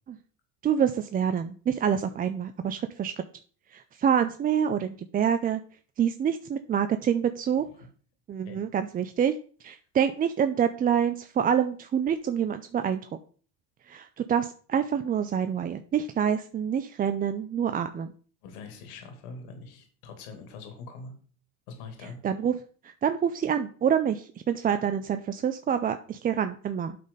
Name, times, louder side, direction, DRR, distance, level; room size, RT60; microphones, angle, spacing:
voice 1, 0.6-3.1 3.7-5.6 6.0-7.6 8.3-9.3 9.6-13.0 13.9-18.1 22.0-22.5 22.8-27.0, right 8 dB, 20° right, 9 dB, 0.3 m, -27 dB
voice 2, 18.4-21.1 21.7-22.2, left 4 dB, 80° left, 6 dB, 2.4 m, -43 dB
8.3 x 4.2 x 5.3 m, 0.43 s
supercardioid pair, 95°, 45 cm